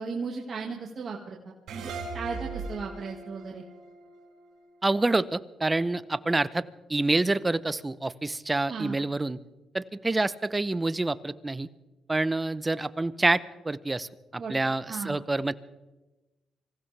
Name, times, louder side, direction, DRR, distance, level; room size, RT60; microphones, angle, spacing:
voice 1, 0.0-3.6 8.7-9.0 14.4-14.6 14.9-15.2, right 5 dB, 45° right, -1 dB, 1.8 m, -36 dB
sound 1, 1.7-5.0, right 3 dB, 75° right, 5.6 m, -39 dB
voice 2, 4.8-6.6 6.9-9.4 9.7-11.7 12.1-15.5, right 2 dB, 20° right, 16 dB, 0.7 m, -27 dB
25.5 x 16.0 x 3.4 m, 1.1 s
cardioid pair, 90°, 0 cm